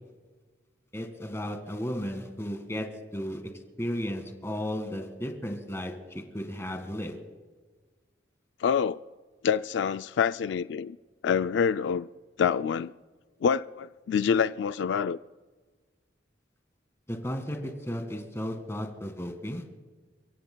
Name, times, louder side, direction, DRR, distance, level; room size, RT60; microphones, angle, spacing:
voice 1, 0.9-2.9 3.1-3.4 3.8-7.2 17.1-17.6 17.9-19.7, equal, 15° left, 1.8 m, -34 dB
voice 2, 8.6-9.0 9.4-11.0 11.2-12.1 12.4-12.9 13.4-15.2, left 7 dB, 80° left, 0.3 m, -26 dB
30.0 x 16.5 x 2.3 m
head